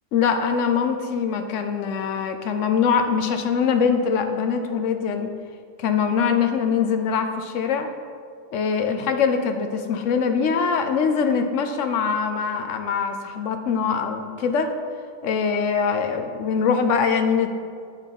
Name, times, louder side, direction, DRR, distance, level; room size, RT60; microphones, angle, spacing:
voice 1, 0.1-5.3 5.8-7.9 8.5-14.7 15.2-17.5, left 6 dB, 65° left, 7 dB, 0.9 m, -23 dB
9.7 x 3.8 x 5.3 m, 2.2 s
omnidirectional pair, 1.5 m